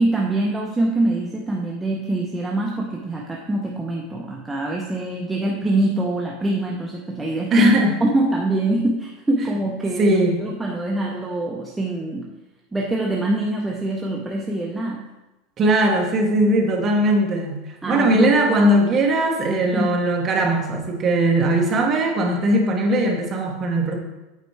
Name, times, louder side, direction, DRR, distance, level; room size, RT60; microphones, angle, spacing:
voice 1, 0.0-7.7 8.0-12.3 12.7-15.0 17.8-18.4 19.7-20.0, right 1 dB, 5° right, -2 dB, 0.6 m, -24 dB
voice 2, 7.5-8.0 10.0-10.4 15.6-17.6 17.9-23.9, right 1 dB, 20° right, 1 dB, 1.1 m, -19 dB
8.2 x 4.4 x 4.6 m, 1.0 s
supercardioid pair, 175°, 0 cm